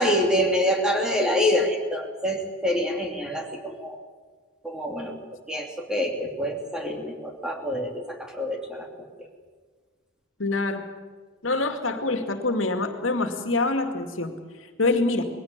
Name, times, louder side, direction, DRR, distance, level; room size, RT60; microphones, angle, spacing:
voice 1, 0.0-4.0 4.6-5.2 5.5-8.9 9.2-9.3, left 1 dB, 5° right, 1 dB, 2.9 m, -26 dB
voice 2, 10.4-10.8 11.4-14.3 14.8-15.2, left 2 dB, 80° left, 6 dB, 2.4 m, -25 dB
21.0 x 16.5 x 9.8 m, 1.5 s
head